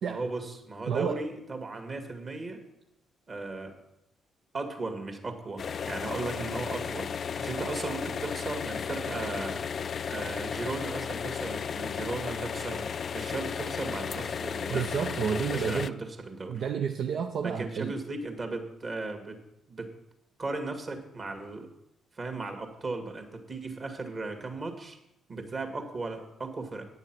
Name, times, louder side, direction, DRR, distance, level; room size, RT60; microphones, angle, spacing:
voice 1, 0.1-2.6 3.3-3.8 4.5-9.6 10.1-14.9 15.5-16.6 17.3-19.4 19.7-19.9 20.4-21.7 22.1-25.0 25.3-26.9, right 3 dB, 40° right, 5 dB, 2.1 m, -36 dB
voice 2, 0.9-1.3 14.7-16.0 16.5-17.9, right 7 dB, 60° right, 5 dB, 0.6 m, -30 dB
sound 1, 5.6-15.9, left 7 dB, 50° left, 0.3 m, -34 dB
9.7 x 7.2 x 6.1 m, 0.85 s
figure-of-eight pair, 40°, 0 cm